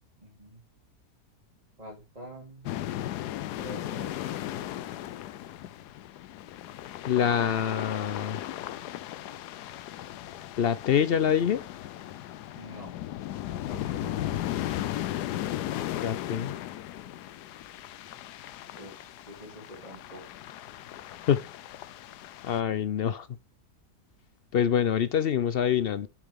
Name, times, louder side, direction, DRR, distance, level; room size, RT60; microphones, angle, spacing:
voice 1, 0.2-0.6 1.8-2.7 3.6-4.6 12.5-13.0 13.6-14.3 18.8-20.2, right 1 dB, 25° right, 3.2 m, -46 dB
sound 1, 2.7-22.6, left 13 dB, 90° left, 1.2 m, -36 dB
voice 2, 7.1-8.4 10.6-11.6 16.0-16.5 21.3-21.4 22.4-23.3 24.5-26.1, left 8 dB, 70° left, 0.5 m, -25 dB
7.6 x 7.3 x 3.6 m
omnidirectional pair, 1.7 m